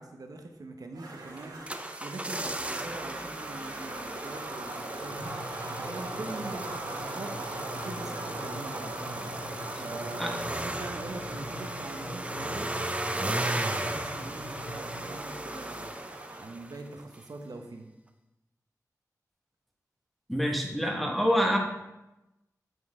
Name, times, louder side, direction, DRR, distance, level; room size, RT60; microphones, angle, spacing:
voice 1, 0.0-1.7 2.0-7.4 7.8-9.3 9.8-12.7 13.1-15.9 16.4-17.9, right 2 dB, 65° right, 4 dB, 0.9 m, -42 dB
sound 1, 0.9-16.4, right 2 dB, 85° right, 1.3 m, -42 dB
sound 2, 1.4-16.9 17.1-17.2, right 1 dB, 20° right, 0.5 m, -36 dB
sound 3, 5.1-15.0, left 1 dB, 75° left, 1.1 m, -45 dB
voice 2, 20.3-21.6, equal, ahead, 1 dB, 1.3 m, -26 dB
8.0 x 4.6 x 3.6 m, 0.96 s
cardioid pair, 50°, 7 cm